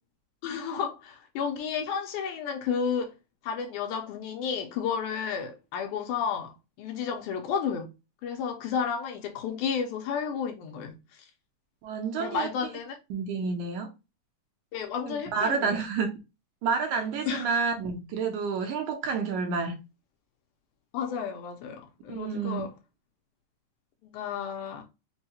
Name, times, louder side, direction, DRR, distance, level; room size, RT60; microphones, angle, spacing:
voice 1, 0.4-3.1 3.4-7.9 8.2-11.3 12.2-13.0 14.7-15.8 17.3-17.6 20.9-22.7 24.1-24.8, left 7 dB, 80° left, 2.0 m, -32 dB
voice 2, 11.8-12.5 13.1-13.9 15.1-16.1 16.6-19.8 22.1-22.7, right 5 dB, 75° right, 1.9 m, -29 dB
5.3 x 2.1 x 2.7 m
omnidirectional pair, 3.8 m